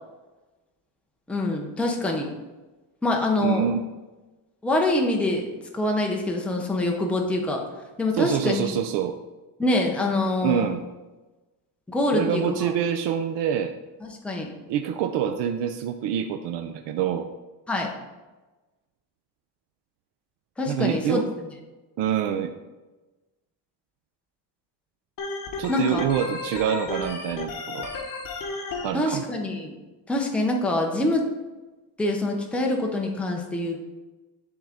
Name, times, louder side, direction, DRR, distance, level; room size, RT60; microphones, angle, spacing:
voice 1, 1.3-2.3 3.0-3.7 4.6-5.5 5.7-7.6 8.0-8.7 9.6-10.7 11.9-12.7 14.0-14.5 17.7-17.9 20.6-21.2 25.7-26.1 28.9-29.7 30.1-31.3 32.0-33.8, left 2 dB, 5° left, 0 dB, 0.7 m, -25 dB
voice 2, 3.4-3.8 8.1-9.2 10.4-10.8 12.1-13.7 14.7-17.3 20.7-21.3 22.0-22.5 25.6-27.9 28.8-29.2, right 9 dB, 80° right, 6 dB, 0.6 m, -26 dB
Organ, 25.2-28.9, left 3 dB, 50° left, 1.1 m, -33 dB
10.0 x 3.8 x 3.5 m, 1.2 s
cardioid pair, 150°, 42 cm